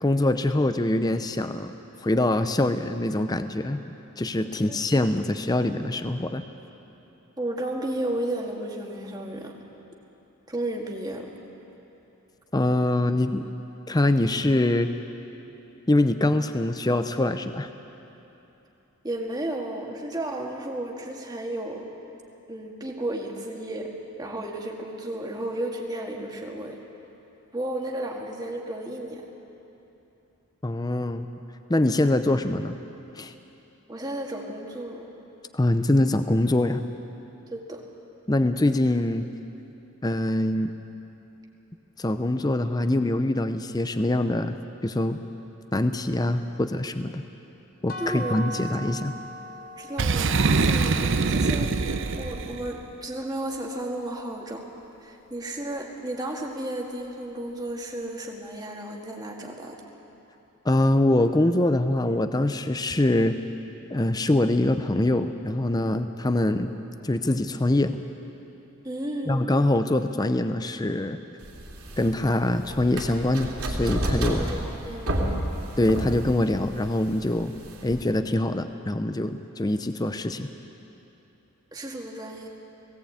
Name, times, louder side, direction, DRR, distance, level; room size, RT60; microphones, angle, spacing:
voice 1, 0.0-1.7 2.0-3.8 4.2-6.4 12.5-13.5 13.9-14.9 15.9-17.7 30.6-31.3 31.7-32.8 33.2-33.3 35.5-36.8 38.3-39.3 40.0-40.7 42.0-44.6 44.8-45.2 45.7-47.2 47.8-49.1 60.6-63.4 63.9-66.7 67.0-68.0 69.3-71.2 72.0-74.5 75.8-77.5 77.8-80.5, left 1 dB, 20° left, 9 dB, 0.6 m, -24 dB
voice 2, 4.4-4.8 7.4-9.5 10.5-11.3 19.0-21.9 22.5-23.9 24.2-26.8 27.5-29.2 33.9-35.1 37.5-37.8 48.0-48.6 49.8-54.6 55.0-59.8 68.8-69.5 74.4-75.1 81.7-82.5, right 1 dB, 20° right, 0 dB, 1.9 m, -33 dB
sound 1, 47.9-53.7, right 1 dB, 40° left, 1.0 m, -40 dB
Boom, 50.0-52.7, right 4 dB, 55° right, 0.7 m, -23 dB
sound 2, 71.4-78.0, right 1 dB, 80° right, 3.0 m, -31 dB
18.5 x 17.0 x 8.6 m, 3.0 s
head